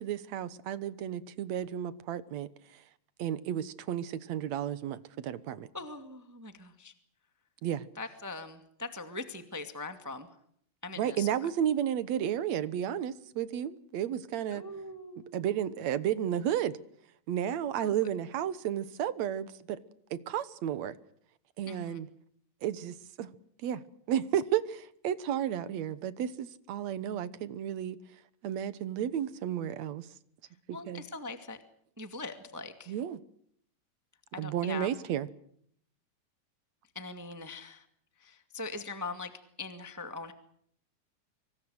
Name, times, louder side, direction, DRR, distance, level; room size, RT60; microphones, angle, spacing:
voice 1, 0.0-2.8 3.2-5.7 7.6-7.9 11.0-14.6 15.2-16.8 17.3-19.8 20.1-21.0 21.6-22.1 22.6-23.3 23.6-23.8 24.1-28.0 28.4-30.1 30.7-31.0 32.9-33.2 34.4-35.3, right 10 dB, 65° right, 2.3 m, -32 dB
voice 2, 5.7-6.9 8.0-10.3 10.8-11.3 14.5-15.7 17.8-17.9 21.6-22.0 30.7-31.6 32.0-32.9 34.3-34.9 36.9-37.8 38.2-39.3 39.6-40.3, left 3 dB, 5° right, 1.5 m, -41 dB
25.5 x 25.0 x 6.4 m
omnidirectional pair, 3.6 m